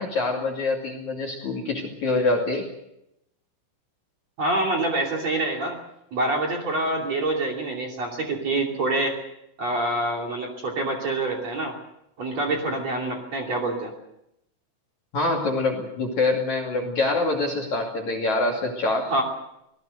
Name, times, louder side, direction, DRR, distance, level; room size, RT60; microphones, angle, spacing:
voice 1, 0.0-2.7 15.1-19.2, left 2 dB, 45° left, 1 dB, 3.2 m, -25 dB
voice 2, 4.4-5.8 6.1-9.2 9.6-11.7 12.2-13.9 19.1-19.2, right 2 dB, 40° right, 3 dB, 3.4 m, -26 dB
26.0 x 18.5 x 6.6 m, 0.82 s
omnidirectional pair, 5.8 m